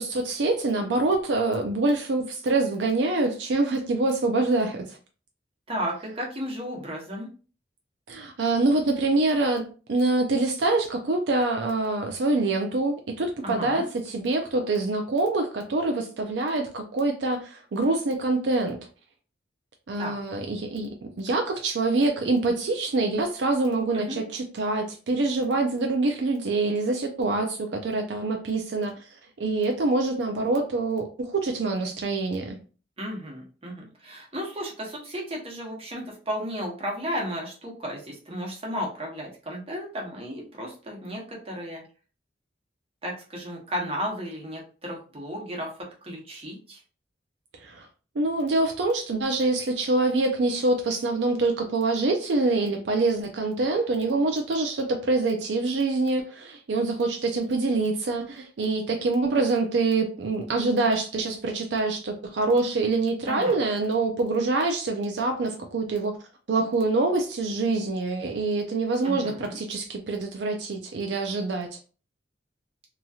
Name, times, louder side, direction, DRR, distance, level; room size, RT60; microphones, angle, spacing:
voice 1, 0.0-5.0 8.1-18.8 19.9-20.9 21.2-29.0 29.4-32.6 47.6-47.9 48.2-66.2 66.5-71.7, right 3 dB, 75° right, 4 dB, 0.5 m, -25 dB
voice 2, 5.7-7.3 13.4-13.9 20.0-20.1 23.9-24.2 33.0-41.8 43.0-45.7 46.0-46.8 63.3-63.6 69.0-69.6, equal, 35° right, -1 dB, 0.9 m, -34 dB
2.9 x 2.7 x 2.3 m, 0.36 s
head